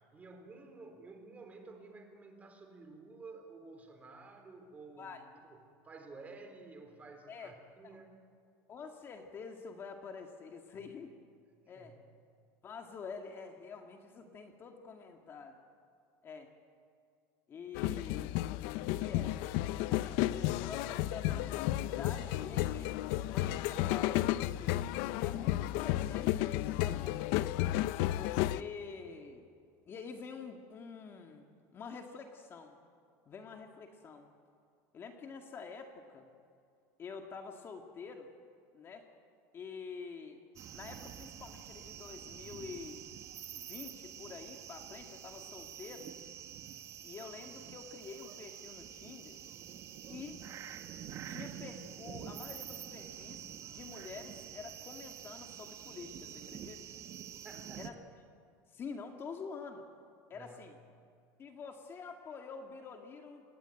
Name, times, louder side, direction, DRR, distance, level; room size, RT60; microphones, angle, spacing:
voice 1, 0.1-5.2 5.4-8.2 11.6-11.9 57.4-57.9 60.3-60.7, right 3 dB, 20° right, 5 dB, 3.9 m, -52 dB
voice 2, 8.7-11.2 11.7-12.0 12.6-15.6 16.2-16.5 17.5-18.4 18.9-19.3 19.6-22.9 23.3-24.8 25.2-27.5 28.2-29.4 29.9-31.5 31.7-32.8 33.3-34.3 34.9-36.3 37.0-38.3 38.7-39.1 39.5-40.4 40.7-43.0 43.5-46.1 47.0-49.4 50.1-50.4 51.3-56.8 57.8-57.9 58.7-59.8 60.3-60.8 61.4-63.4, left 5 dB, 30° left, 4 dB, 2.1 m, -47 dB
sound 1, 17.7-28.6, left 15 dB, 70° left, 0.7 m, -33 dB
sound 2, 40.6-57.9, right 9 dB, 40° right, 1.6 m, -47 dB
29.0 x 21.0 x 9.3 m, 2.4 s
cardioid pair, 155°, 8 cm